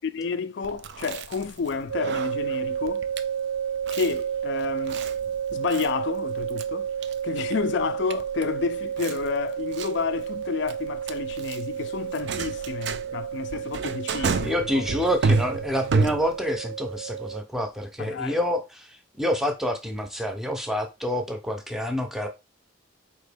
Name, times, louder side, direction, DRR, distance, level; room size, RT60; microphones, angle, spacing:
voice 1, 0.1-3.1 3.9-5.0 5.5-6.9 7.2-14.9 18.0-18.4, left 5 dB, 55° left, 0.3 m, -30 dB
Chewing mastication, 0.6-16.6, right 4 dB, 55° right, 0.4 m, -31 dB
sound 1, 1.9-17.4, right 8 dB, 85° right, 0.9 m, -31 dB
voice 2, 14.4-22.3, equal, ahead, 0.5 m, -28 dB
4.3 x 2.9 x 3.3 m
head